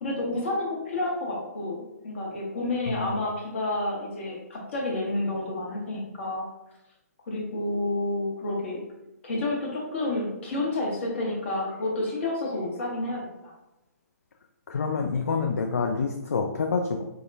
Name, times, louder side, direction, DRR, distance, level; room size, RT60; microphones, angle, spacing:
voice 1, 0.0-6.4 7.3-8.8 9.2-13.5, left 2 dB, 45° left, -2 dB, 1.1 m, -30 dB
voice 2, 14.7-17.0, left 5 dB, 60° left, 3 dB, 0.4 m, -27 dB
4.6 x 2.2 x 2.7 m, 0.94 s
figure-of-eight pair, 130°, 9 cm